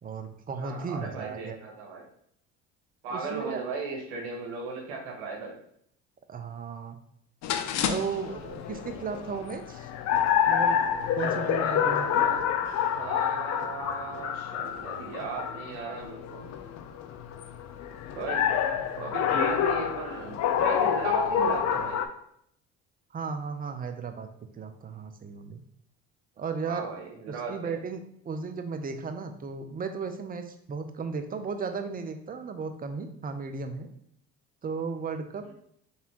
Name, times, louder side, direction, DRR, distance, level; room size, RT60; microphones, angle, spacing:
voice 1, 0.0-1.6 3.1-3.6 6.3-7.0 7.8-9.9 10.5-10.8 11.2-12.3 23.1-24.3 24.5-25.6 26.4-26.9 27.5-33.9 34.6-35.5, right 5 dB, 30° right, 7 dB, 0.6 m, -35 dB
voice 2, 0.6-2.0 3.0-5.6 8.8-8.9 11.6-12.4 12.9-16.6 18.2-18.4 18.8-22.0 26.7-27.8, right 4 dB, 85° right, 0 dB, 1.2 m, -37 dB
sound 1, 7.4-22.1, left 8 dB, 55° left, 0.5 m, -28 dB
4.1 x 3.5 x 2.9 m, 0.69 s
supercardioid pair, 75°, 32 cm